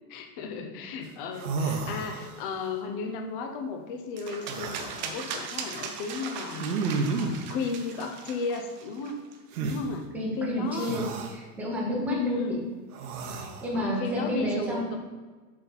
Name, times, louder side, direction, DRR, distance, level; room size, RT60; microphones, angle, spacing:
voice 1, 0.1-9.2 9.6-10.1 10.4-11.0 12.1-12.6 13.2-15.0, left 4 dB, 35° left, 5 dB, 0.9 m, -34 dB
sound 1, 1.0-1.1 1.3-2.6 4.4-5.0 6.6-7.5 9.5-9.8 10.8-11.4 12.9-13.7, right 4 dB, 65° right, 1.2 m, -31 dB
sound 2, 4.2-9.4, right 6 dB, 30° right, 0.5 m, -39 dB
voice 2, 10.1-12.6 13.4-14.9, equal, 5° right, -3 dB, 1.0 m, -30 dB
7.4 x 6.2 x 4.2 m, 1.4 s
supercardioid pair, 170°, 47 cm